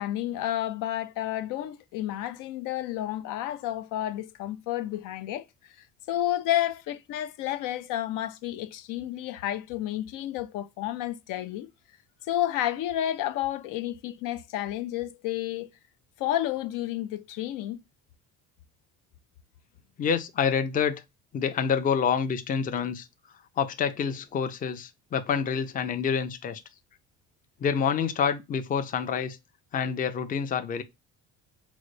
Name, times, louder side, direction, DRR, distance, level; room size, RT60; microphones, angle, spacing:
voice 1, 0.0-5.5 5.8-11.7 12.3-15.7 16.2-17.8, left 13 dB, 80° left, 0.5 m, -31 dB
voice 2, 20.0-21.0 21.3-23.1 23.6-26.6 27.6-29.4 29.7-30.8, left 7 dB, 25° left, 0.4 m, -27 dB
3.9 x 2.1 x 3.0 m
cardioid pair, 120°, 31 cm